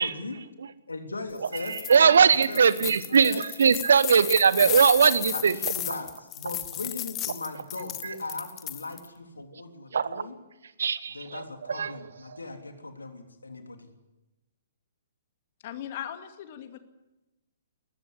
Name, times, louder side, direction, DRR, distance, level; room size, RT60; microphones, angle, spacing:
voice 1, 0.0-0.4 0.9-3.4 5.3-10.4 11.1-13.9, left 3 dB, 75° left, 5 dB, 3.4 m, -38 dB
sound 1, 1.4-2.0 2.3-9.1, left 13 dB, 25° left, 1.0 m, -34 dB
voice 2, 1.9-3.3 3.6-5.5 9.9-10.2 10.8-11.2 11.7-11.9, right 6 dB, 65° right, 16 dB, 1.1 m, -20 dB
voice 3, 15.6-16.8, left 10 dB, 45° left, 8 dB, 2.3 m, -38 dB
21.0 x 14.5 x 10.0 m, 0.99 s
figure-of-eight pair, 120°, 0 cm